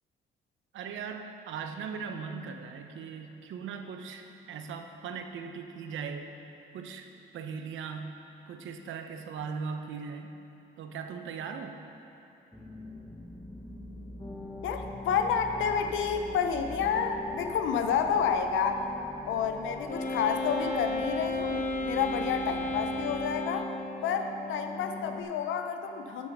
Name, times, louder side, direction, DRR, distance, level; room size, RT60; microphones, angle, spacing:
voice 1, 0.7-6.3 6.7-7.1 7.3-8.2 8.5-10.3 10.8-11.8, right 6 dB, 75° right, 6 dB, 0.9 m, -39 dB
sound 1, 12.5-23.2, left 1 dB, 5° left, 1.1 m, -45 dB
sound 2, 14.2-25.2, left 2 dB, 20° left, 1.3 m, -43 dB
voice 2, 14.6-18.8 19.3-23.7 24.0-26.3, left 7 dB, 80° left, 6 dB, 0.6 m, -29 dB
Wind instrument woodwind instrument, 19.9-23.9, left 2 dB, 40° left, 1.1 m, -33 dB
13.0 x 5.8 x 5.4 m, 2.9 s
cardioid pair, 90°, 20 cm